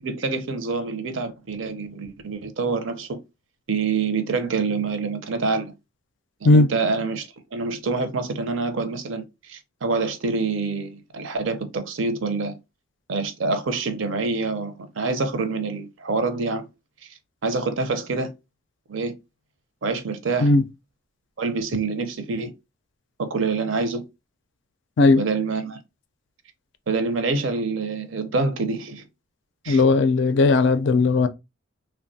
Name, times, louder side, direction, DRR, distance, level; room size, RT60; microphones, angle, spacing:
voice 1, 0.0-3.2 3.7-5.7 6.4-7.3 7.5-12.5 13.1-16.7 17.4-18.3 18.9-19.1 19.8-20.5 21.4-22.5 23.2-24.0 25.1-25.8 26.9-29.0 29.6-29.8, right 4 dB, 75° right, 0.5 m, -26 dB
voice 2, 29.7-31.3, left 3 dB, 65° left, 0.4 m, -17 dB
3.2 x 2.1 x 2.6 m
head